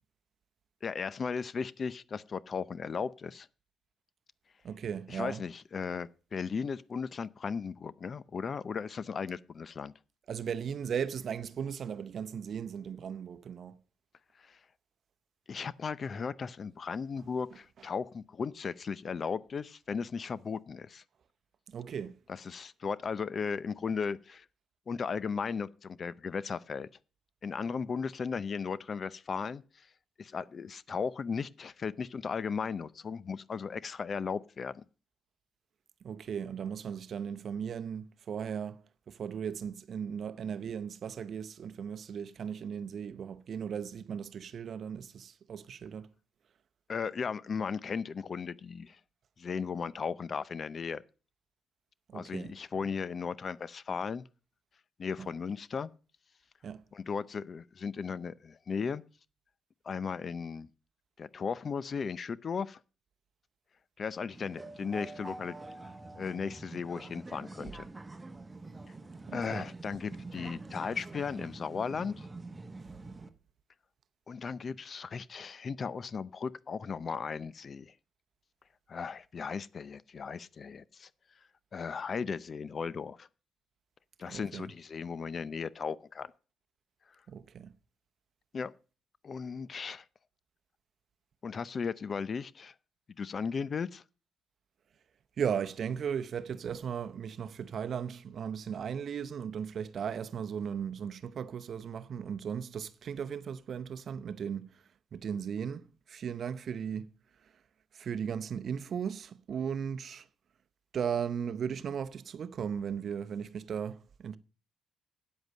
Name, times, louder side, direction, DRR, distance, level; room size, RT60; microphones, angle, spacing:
voice 1, 0.8-3.5 5.1-9.9 14.4-14.6 15.5-21.0 22.3-24.4 24.9-26.9 27.4-29.9 30.2-34.8 46.9-49.0 49.4-51.0 52.1-54.3 55.0-55.9 56.9-59.0 59.8-60.7 61.2-62.8 64.0-65.6 65.8-67.9 69.3-72.3 74.3-77.9 78.9-81.1 81.7-83.3 84.2-86.3 88.5-88.7 89.2-90.0 91.4-92.7 93.2-94.0, left 5 dB, 45° left, 0.6 m, -36 dB
voice 2, 4.6-5.4 10.3-13.8 21.7-22.2 36.0-46.1 52.1-52.5 55.2-55.3 56.6-56.8 69.3-69.7 70.4-70.5 70.8-70.9 73.2-73.3 84.3-84.7 87.3-87.7 95.4-104.7 105.1-107.1 107.9-110.3 110.9-114.4, right 7 dB, 55° right, 0.7 m, -37 dB
sound 1, 64.3-73.3, right 2 dB, 20° right, 1.1 m, -46 dB
9.1 x 8.0 x 6.5 m
cardioid pair, 90°, 0 cm